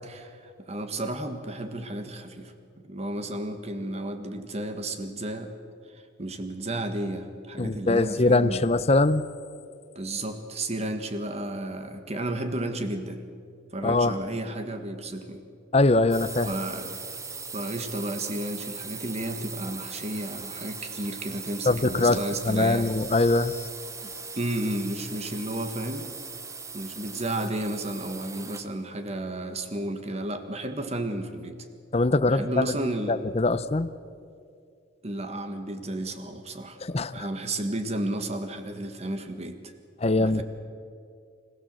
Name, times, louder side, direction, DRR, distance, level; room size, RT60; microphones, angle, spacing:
voice 1, 0.0-2.5 2.9-5.5 6.2-8.7 10.0-13.3 13.7-15.4 16.5-16.9 17.5-22.9 24.4-26.1 26.7-31.7 32.3-33.2 35.0-36.8 37.1-39.7 40.2-40.4, right 1 dB, 35° right, 8 dB, 1.6 m, -32 dB
voice 2, 7.6-9.2 13.8-14.2 15.7-16.5 21.6-23.7 31.9-32.7 33.1-33.9 36.8-37.3 40.0-40.4, left 2 dB, 35° left, 13 dB, 0.7 m, -22 dB
sound 1, 16.1-28.8, right 5 dB, 15° right, 0.9 m, -39 dB
25.5 x 16.0 x 7.6 m, 2.3 s
head